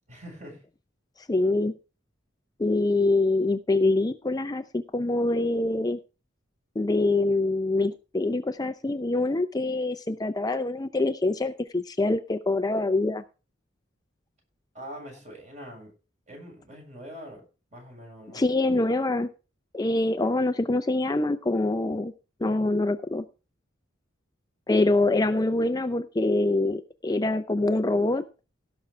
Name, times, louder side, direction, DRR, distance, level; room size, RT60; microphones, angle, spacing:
voice 1, 0.1-0.6 14.7-15.9 16.3-17.4 17.7-18.5, equal, 40° right, 0 dB, 6.9 m, -43 dB
voice 2, 1.3-1.7 2.6-6.0 6.8-13.2 18.3-19.3 19.7-22.1 22.4-23.2 24.7-28.2, left 2 dB, 20° left, 9 dB, 0.5 m, -25 dB
17.0 x 6.2 x 4.4 m, 0.33 s
head